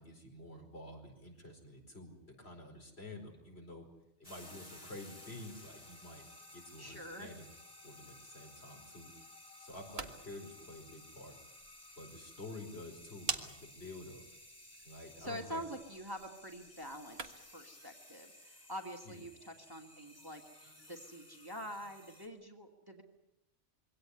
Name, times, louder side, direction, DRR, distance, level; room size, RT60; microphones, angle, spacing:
voice 1, 0.0-3.9 4.2-6.2 6.5-7.5 7.8-9.1 9.6-11.3 12.0-14.2 14.8-15.6 19.0-19.2, left 1 dB, 60° left, 2 dB, 5.1 m, -49 dB
sound 1, 4.2-22.3, left 1 dB, 30° left, 4.5 m, -56 dB
voice 2, 6.8-7.3 15.2-23.0, equal, 20° right, 2 dB, 2.3 m, -46 dB
sound 2, 9.7-17.6, right 4 dB, 60° right, 1.7 m, -47 dB
23.5 x 17.5 x 9.9 m, 0.86 s
omnidirectional pair, 1.2 m